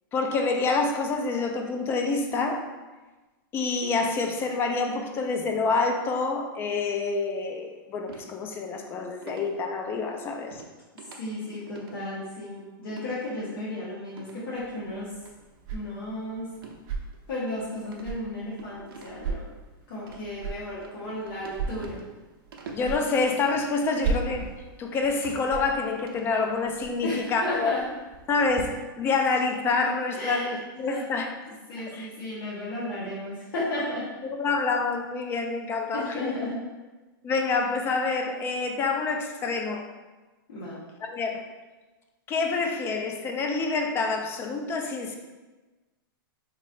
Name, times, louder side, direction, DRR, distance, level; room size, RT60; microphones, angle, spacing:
voice 1, 0.1-2.7 3.5-10.6 22.7-24.5 24.8-27.7 28.3-31.3 31.9-32.1 34.4-36.3 37.2-39.8 41.0-41.4 42.3-45.2, left 4 dB, 20° left, 4 dB, 0.3 m, -27 dB
sound 1, 8.1-8.3 9.2-9.5 10.5-10.7 11.0-11.2 11.5-11.9 12.9-13.1 14.1-14.4 15.2-15.3 16.5-16.8 17.1-17.2 17.8-19.4 20.0-20.2 20.8-22.2 22.5-22.9 23.4-23.7 24.4-24.6 25.0-25.5 25.9-26.3, right 4 dB, 75° right, 0.6 m, -45 dB
voice 2, 11.1-15.1 15.7-16.5 17.3-19.4 19.9-22.0 27.0-27.8 30.1-30.6 30.9-31.0 31.5-34.1 35.9-36.6 40.5-40.8, left 1 dB, 75° left, -9 dB, 1.0 m, -34 dB
sound 2, 14.6-28.6, right 4 dB, 35° right, 0.5 m, -38 dB
3.7 x 3.0 x 2.5 m, 1.2 s
hypercardioid pair, 140°, 12 cm